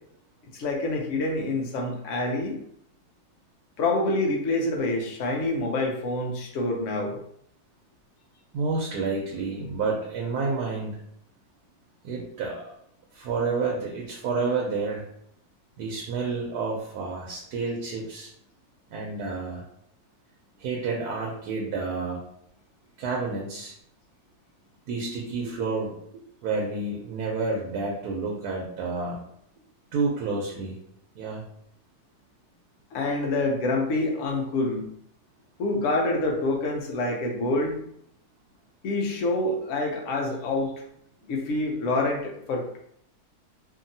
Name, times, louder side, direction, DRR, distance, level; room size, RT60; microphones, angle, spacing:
voice 1, 0.5-2.6 3.8-7.2 32.9-34.9 35.6-37.8 38.8-40.7 41.3-42.8, left 2 dB, 60° left, 1 dB, 0.9 m, -26 dB
voice 2, 8.5-11.0 12.0-12.7 13.1-15.1 15.8-18.3 18.9-19.6 20.6-22.2 23.0-23.7 24.9-29.2 29.9-30.7 31.1-31.4, right 4 dB, 80° right, -1 dB, 1.1 m, -29 dB
2.8 x 2.6 x 2.6 m, 0.72 s
omnidirectional pair, 1.6 m